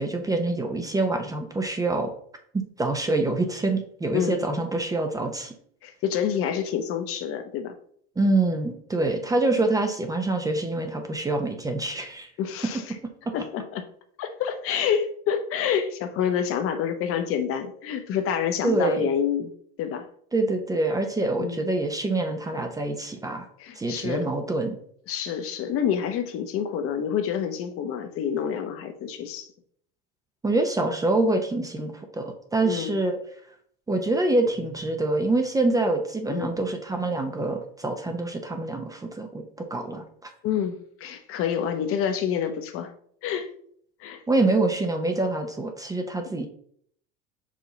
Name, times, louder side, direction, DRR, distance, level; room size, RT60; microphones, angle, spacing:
voice 1, 0.0-2.1 2.5-5.5 8.2-12.3 18.6-19.1 20.3-23.5 23.7-24.8 30.4-33.2 33.9-39.4 39.7-40.3 44.3-46.5, right 2 dB, 10° right, 5 dB, 0.7 m, -25 dB
voice 2, 5.8-7.7 12.4-12.9 13.3-13.8 14.2-19.5 19.8-20.0 21.4-21.6 23.6-24.3 25.1-29.5 32.6-32.9 36.3-36.5 40.4-42.9 43.2-43.5 44.0-44.2, left 8 dB, 50° left, 7 dB, 0.9 m, -28 dB
5.2 x 5.0 x 4.0 m, 0.62 s
supercardioid pair, 125°, 30 cm